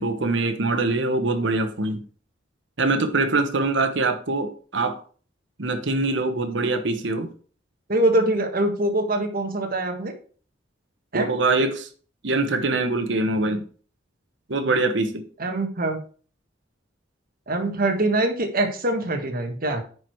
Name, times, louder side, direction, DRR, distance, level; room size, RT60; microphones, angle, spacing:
voice 1, 0.0-2.0 2.8-5.0 5.6-7.3 11.1-11.9 12.2-13.6 14.5-15.2, right 2 dB, 65° right, 8 dB, 1.1 m, -23 dB
voice 2, 7.9-10.1 11.1-11.3 15.4-16.0 17.5-19.8, right 1 dB, 50° right, 5 dB, 1.5 m, -23 dB
9.6 x 4.7 x 4.6 m, 0.42 s
head